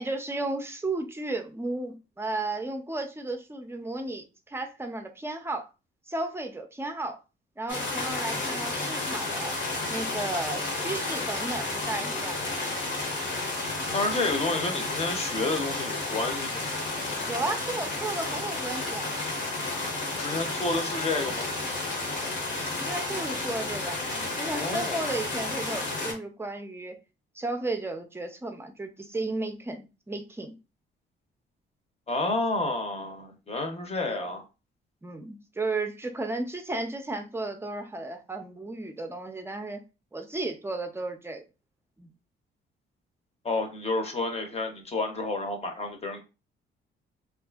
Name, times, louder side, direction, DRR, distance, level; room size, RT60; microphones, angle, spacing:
voice 1, 0.0-5.7 6.1-7.2 7.6-9.5 9.9-12.4 17.3-19.2 22.8-27.0 27.3-30.5 34.0-34.3 35.0-39.8 40.1-41.4 42.0-42.1, right 2 dB, 10° right, 0.5 m, -34 dB
sound 1, 7.7-26.1, left 2 dB, 70° left, 1.0 m, -32 dB
voice 2, 13.9-16.7 20.1-21.5 24.5-25.1 32.1-34.4 43.4-46.2, left 2 dB, 30° left, 0.7 m, -30 dB
2.6 x 2.5 x 2.3 m
cardioid pair, 90°, 20 cm